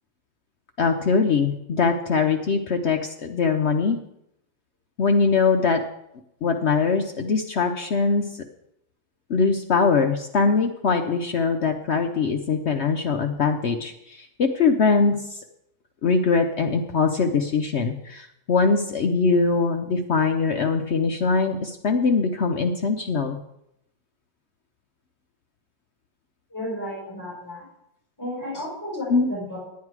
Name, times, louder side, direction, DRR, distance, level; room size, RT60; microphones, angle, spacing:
voice 1, 0.8-4.0 5.0-5.8 6.4-8.4 9.3-15.4 16.0-23.4 29.1-29.3, left 4 dB, 65° left, 5 dB, 0.6 m, -22 dB
voice 2, 26.5-27.6 28.2-29.6, left 1 dB, 10° left, -7 dB, 4.9 m, -33 dB
10.5 x 9.5 x 4.7 m, 0.81 s
omnidirectional pair, 1.9 m